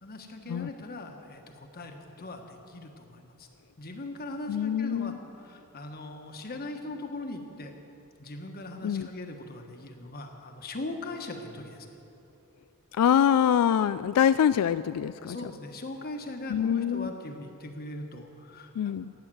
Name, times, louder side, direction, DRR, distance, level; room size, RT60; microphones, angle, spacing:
voice 1, 0.0-3.5 3.8-7.7 8.2-11.9 15.2-18.9, left 2 dB, 45° left, 4 dB, 1.4 m, -40 dB
voice 2, 4.5-5.2 8.8-9.1 12.9-15.4 16.5-17.1 18.8-19.1, left 9 dB, 85° left, 14 dB, 0.3 m, -24 dB
15.0 x 8.9 x 9.2 m, 2.9 s
head